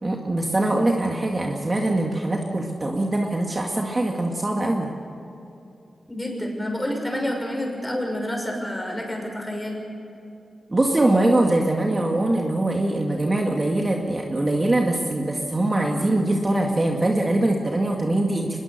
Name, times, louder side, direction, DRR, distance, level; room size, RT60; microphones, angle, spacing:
voice 1, 0.0-4.9 10.7-18.6, right 1 dB, 30° right, 0 dB, 2.0 m, -22 dB
voice 2, 6.1-9.8, left 1 dB, 15° left, 1 dB, 6.0 m, -28 dB
24.5 x 21.0 x 6.8 m, 2.7 s
wide cardioid pair, 100°, 0 cm